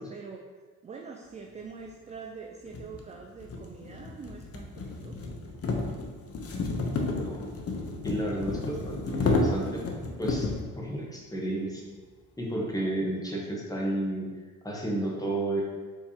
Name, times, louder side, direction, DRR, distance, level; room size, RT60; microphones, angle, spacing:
voice 1, 0.0-5.2, right 5 dB, 20° right, 2 dB, 0.4 m, -44 dB
sound 1, 1.9-2.0 2.7-10.7, left 3 dB, 40° left, 0.8 m, -31 dB
voice 2, 7.1-7.5 8.0-9.8 10.2-10.5 10.8-11.8 12.4-14.3 14.6-15.6, right 1 dB, 10° left, -3 dB, 1.2 m, -31 dB
4.5 x 3.4 x 2.9 m, 1.4 s
supercardioid pair, 65°, 37 cm